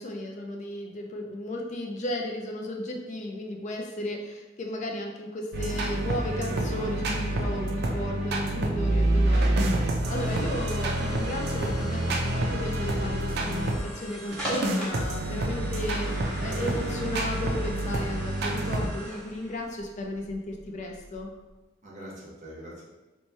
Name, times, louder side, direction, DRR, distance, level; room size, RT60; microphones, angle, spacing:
voice 1, 0.0-21.3, left 1 dB, 40° left, 1 dB, 0.3 m, -34 dB
sound 1, 5.5-13.8 14.3-18.9, right 1 dB, 55° right, 0.4 m, -28 dB
sound 2, 9.7-21.5, left 1 dB, 5° left, 1.5 m, -41 dB
voice 2, 10.1-10.8 21.8-22.9, equal, 40° right, -6 dB, 1.0 m, -44 dB
3.1 x 2.2 x 4.1 m, 1.1 s
head